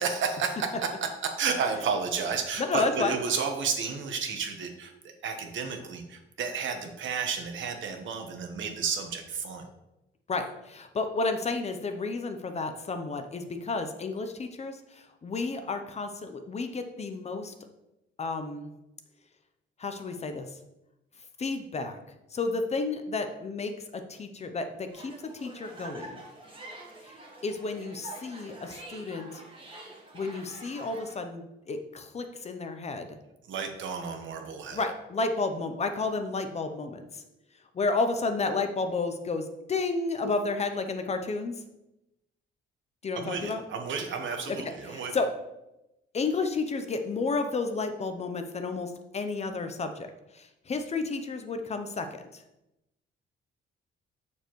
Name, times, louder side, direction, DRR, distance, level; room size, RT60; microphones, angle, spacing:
voice 1, 0.0-4.9 5.2-9.7 33.5-34.8 43.1-45.1, right 5 dB, 65° right, 5 dB, 1.1 m, -32 dB
voice 2, 2.6-3.2 10.3-17.5 18.2-18.7 19.8-20.5 21.4-22.0 22.3-26.2 27.0-27.1 27.4-29.4 30.1-33.2 34.7-37.2 37.7-41.5 43.0-43.6 44.5-45.3 46.1-52.4, left 3 dB, 30° left, 7 dB, 0.6 m, -31 dB
sound 1, 24.9-31.2, right 2 dB, 25° right, 1.4 m, -46 dB
7.2 x 6.7 x 3.1 m, 0.92 s
cardioid pair, 140°, 21 cm